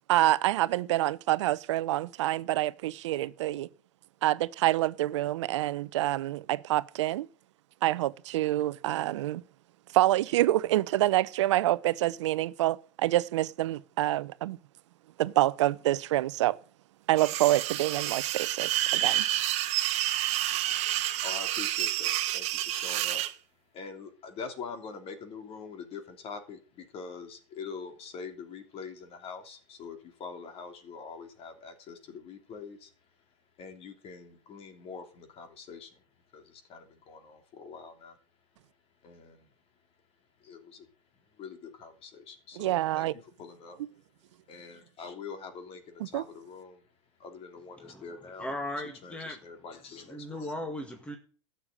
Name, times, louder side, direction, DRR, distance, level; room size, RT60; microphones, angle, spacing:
voice 1, 0.1-3.7 4.2-7.3 7.8-9.4 9.9-14.6 15.2-16.6 17.1-19.2 42.6-43.1 46.1-46.2, right 15 dB, 65° right, 0.7 m, -27 dB
sound 1, 17.2-23.3, right 14 dB, 45° right, 1.3 m, -29 dB
voice 2, 21.2-23.2 23.7-32.9 33.6-36.0 36.3-38.2 39.0-39.5 40.4-40.9 41.4-43.8 44.5-46.9 47.2-48.5 49.0-50.5, left 5 dB, 35° left, 3.0 m, -44 dB
voice 3, 48.4-49.4 50.1-51.2, left 1 dB, 5° left, 1.9 m, -37 dB
12.5 x 6.9 x 8.6 m
hypercardioid pair, 105°, 16 cm